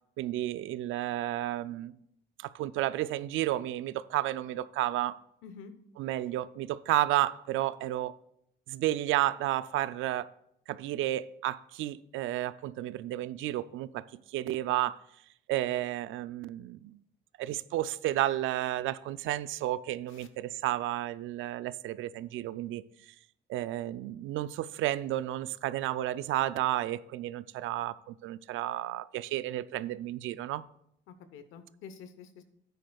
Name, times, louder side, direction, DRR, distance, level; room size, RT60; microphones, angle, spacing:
voice 1, 0.2-1.9 2.4-5.2 6.0-8.2 8.7-10.3 10.7-14.0 14.3-15.0 15.5-17.0 17.4-23.1 23.5-30.6, right 14 dB, 85° right, 0.4 m, -32 dB
voice 2, 5.4-5.7 20.1-20.3 31.1-32.4, left 6 dB, 90° left, 0.9 m, -48 dB
13.0 x 9.2 x 2.3 m
cardioid pair, 90°, 20 cm